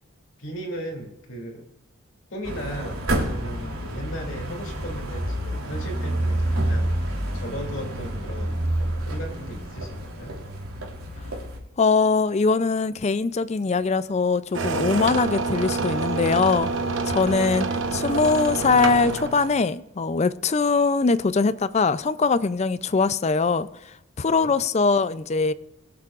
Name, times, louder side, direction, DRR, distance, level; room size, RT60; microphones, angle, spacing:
voice 1, 0.4-1.6 2.3-10.4 24.2-24.5 25.3-25.4, equal, 60° left, 2.7 m, -37 dB
sound 1, 2.4-11.6, right 1 dB, 90° right, 3.4 m, -28 dB
voice 2, 11.8-16.7 17.0-23.7 24.2-25.5, left 4 dB, 30° left, 0.4 m, -22 dB
sound 2, 14.5-19.6, right 3 dB, 60° right, 1.1 m, -27 dB
22.0 x 8.4 x 2.5 m
head